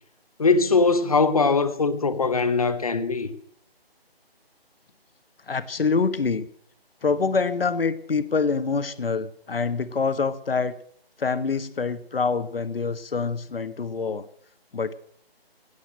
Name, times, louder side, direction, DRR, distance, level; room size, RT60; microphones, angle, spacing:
voice 1, 0.4-3.3, left 4 dB, 35° left, 1.0 m, -21 dB
voice 2, 5.4-6.5 7.0-10.8 11.2-14.3 14.7-14.9, left 4 dB, 65° left, 1.3 m, -25 dB
16.5 x 8.2 x 8.6 m
hypercardioid pair, 175°, 31 cm